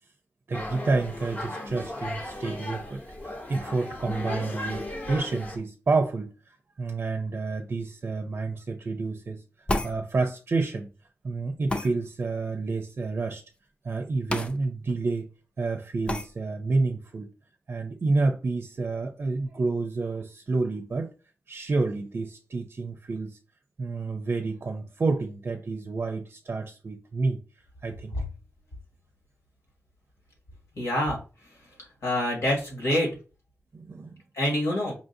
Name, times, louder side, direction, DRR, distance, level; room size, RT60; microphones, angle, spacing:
sound 1, 0.5-5.6, left 1 dB, 40° left, 0.9 m, -36 dB
voice 1, 0.5-9.4 9.8-10.9 11.2-13.4 13.8-15.3 15.6-17.3 17.7-21.1 21.5-23.4 23.8-27.4 27.8-28.1 33.7-34.2, right 3 dB, 50° right, 0.4 m, -29 dB
sound 2, 9.7-10.0 11.7-11.9 14.3-14.5 14.9-15.0 16.1-16.3, left 1 dB, 20° left, 0.4 m, -28 dB
voice 2, 30.8-31.2 32.0-33.1 34.4-35.0, left 1 dB, 90° left, 1.8 m, -26 dB
5.1 x 2.5 x 2.6 m
wide cardioid pair, 110°, 5 cm